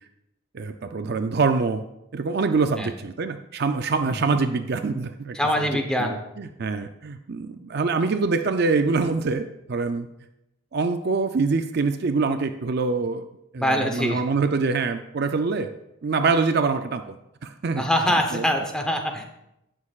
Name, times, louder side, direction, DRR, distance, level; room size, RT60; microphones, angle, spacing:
voice 1, 0.5-1.8 2.1-10.1 10.7-13.2 13.5-15.7 16.0-17.2 17.4-18.5, right 4 dB, 50° right, 8 dB, 0.4 m, -25 dB
voice 2, 4.0-4.4 5.3-6.2 13.6-14.2 17.8-19.2, equal, 5° left, 3 dB, 0.8 m, -24 dB
16.5 x 6.5 x 2.4 m, 0.86 s
head